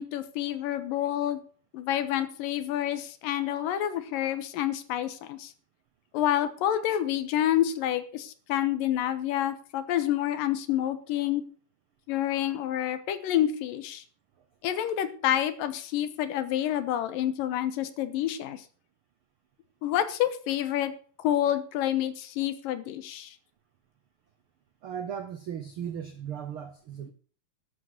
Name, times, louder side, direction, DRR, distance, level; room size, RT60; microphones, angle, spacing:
voice 1, 0.0-1.4 1.7-5.5 6.1-11.4 12.1-14.0 14.6-18.6 19.8-20.9 21.2-23.4, left 11 dB, 90° left, 12 dB, 2.7 m, -28 dB
voice 2, 24.8-27.1, right 8 dB, 80° right, 9 dB, 1.2 m, -37 dB
12.0 x 7.4 x 7.8 m, 0.42 s
omnidirectional pair, 3.9 m